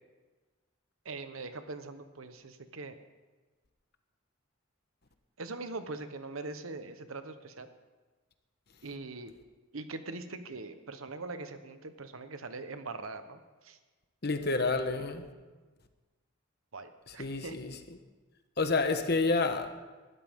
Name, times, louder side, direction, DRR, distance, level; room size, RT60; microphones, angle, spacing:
voice 1, 1.0-3.0 5.4-7.7 8.8-9.3 9.7-13.8 16.7-17.5, right 3 dB, 85° right, 1.1 m, -42 dB
voice 2, 14.2-15.3 17.2-17.7 18.6-19.7, left 3 dB, 50° left, 1.1 m, -29 dB
21.0 x 12.5 x 3.7 m
head